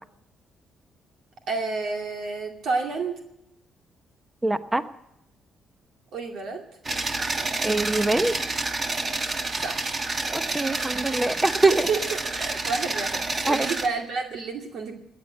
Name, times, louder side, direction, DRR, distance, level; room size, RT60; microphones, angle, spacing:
voice 1, 1.5-3.2 6.1-6.6 9.6-10.0 11.9-12.0 12.4-15.0, right 4 dB, 70° right, 2 dB, 2.3 m, -30 dB
voice 2, 4.4-4.8 7.6-8.3 10.3-11.9 13.4-13.7, right 2 dB, 15° right, 11 dB, 0.9 m, -23 dB
sound 1, 6.8-13.9, right 3 dB, 35° right, 1.5 m, -29 dB
18.0 x 9.5 x 8.0 m, 0.83 s
cardioid pair, 90°, 0 cm